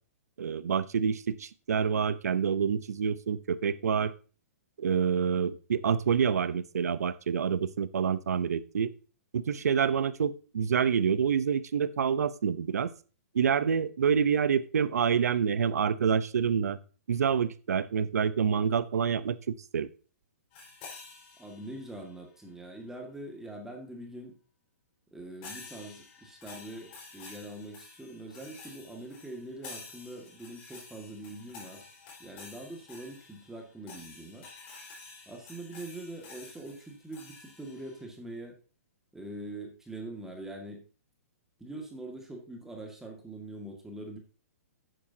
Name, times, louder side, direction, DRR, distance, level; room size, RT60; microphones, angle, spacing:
voice 1, 0.4-4.1 4.8-8.9 9.3-12.9 13.3-16.8 17.1-19.9, right 7 dB, 80° right, 16 dB, 0.8 m, -27 dB
sound 1, 20.5-22.1 25.4-38.0, left 4 dB, 40° left, 4.7 m, -50 dB
voice 2, 21.4-24.4 25.1-31.8 32.2-34.5 35.3-38.6 39.1-40.8 41.6-44.2, right 1 dB, 5° right, 1 dB, 2.0 m, -43 dB
11.0 x 9.1 x 2.8 m, 0.36 s
hypercardioid pair, 145°, 8 cm